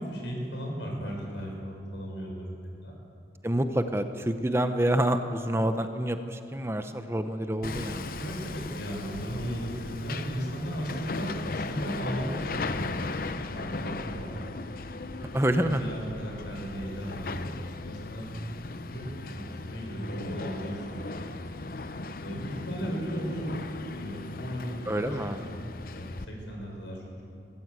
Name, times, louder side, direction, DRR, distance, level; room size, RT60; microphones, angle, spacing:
voice 1, 0.0-2.9 8.1-14.3 15.6-17.5 17.8-18.3 18.8-21.2 22.2-23.6 23.9-24.8 25.1-25.3 25.9-27.0, equal, 85° left, 0 dB, 6.1 m, -36 dB
voice 2, 3.4-8.1 15.3-15.8 24.9-25.4, right 1 dB, 15° right, 8 dB, 0.7 m, -27 dB
Hammer, 7.6-26.3, left 3 dB, 50° left, 0.7 m, -37 dB
22.0 x 14.5 x 8.2 m, 2.6 s
head